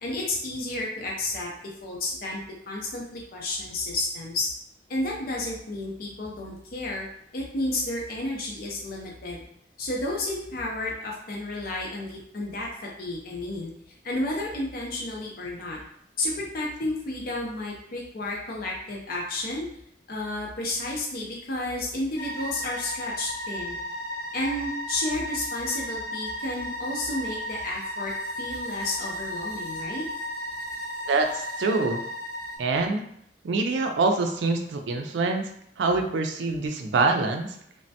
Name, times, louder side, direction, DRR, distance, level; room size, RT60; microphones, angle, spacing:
voice 1, 0.0-4.5 4.9-7.1 7.3-9.4 9.8-13.7 14.0-15.8 16.2-19.7 20.1-23.8 24.3-28.1 28.4-30.1, left 2 dB, 55° left, -2 dB, 0.5 m, -31 dB
sound 1, 22.2-32.6, equal, 90° left, 1.0 m, -34 dB
voice 2, 31.1-32.0 32.6-33.0 33.4-35.5 35.8-37.6, right 3 dB, 75° right, 5 dB, 0.4 m, -25 dB
3.2 x 2.1 x 2.7 m, 0.71 s
head